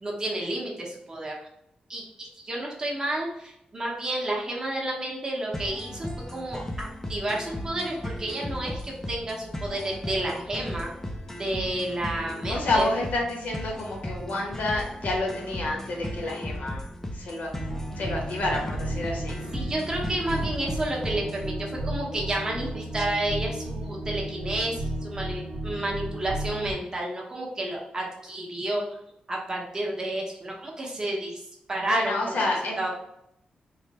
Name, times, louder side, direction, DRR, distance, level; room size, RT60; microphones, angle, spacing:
voice 1, 0.0-1.4 1.9-10.9 11.4-12.9 19.5-28.8 29.3-31.4 31.7-32.2 32.8-32.9, right 1 dB, 25° right, -2 dB, 0.9 m, -31 dB
sound 1, 5.5-21.5, left 1 dB, 15° left, 0.4 m, -36 dB
voice 2, 12.5-16.9 17.1-17.5 17.9-19.4 31.9-32.9, left 2 dB, 70° left, 0 dB, 1.0 m, -29 dB
sound 2, 17.5-26.7, right 1 dB, 80° right, 1.1 m, -33 dB
3.2 x 2.2 x 4.0 m, 0.80 s
wide cardioid pair, 140°, 3 cm